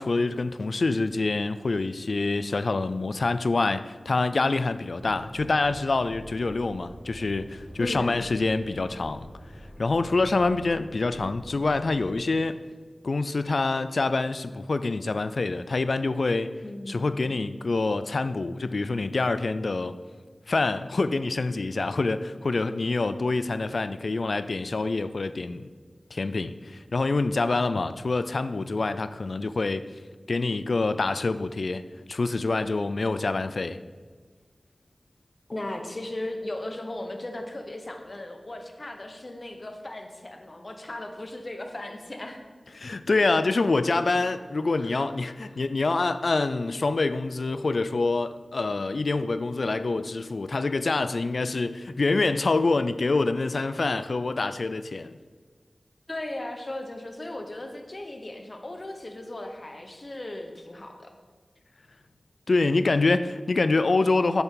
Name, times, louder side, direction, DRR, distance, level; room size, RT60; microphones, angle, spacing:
voice 1, 0.0-9.3 9.8-12.6 13.0-16.5 16.9-20.0 20.5-25.7 26.1-29.8 30.3-31.8 32.1-33.8 42.7-55.2 62.5-64.4, left 3 dB, 75° left, 0.4 m, -26 dB
sound 1, 5.0-12.2, equal, 25° right, 1.3 m, -45 dB
voice 2, 7.8-8.2 16.6-17.1 35.5-42.4 44.8-44.9 56.1-61.1, left 1 dB, 50° left, 1.0 m, -37 dB
8.1 x 6.9 x 3.8 m
cardioid pair, 40°, 0 cm